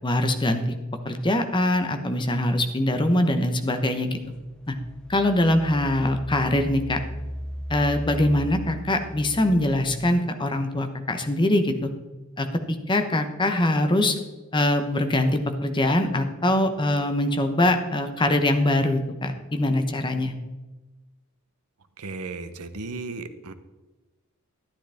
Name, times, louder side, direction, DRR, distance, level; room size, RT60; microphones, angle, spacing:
voice 1, 0.0-0.6 1.0-4.2 4.7-4.8 5.1-7.0 7.7-11.9 12.4-12.6 12.9-14.2 14.5-20.3, left 1 dB, 20° left, 7 dB, 0.9 m, -23 dB
Engine, 4.3-10.2, equal, 5° left, 0.5 m, -37 dB
voice 2, 22.0-23.5, right 3 dB, 90° right, 10 dB, 0.8 m, -35 dB
11.5 x 10.0 x 3.5 m, 1.1 s
head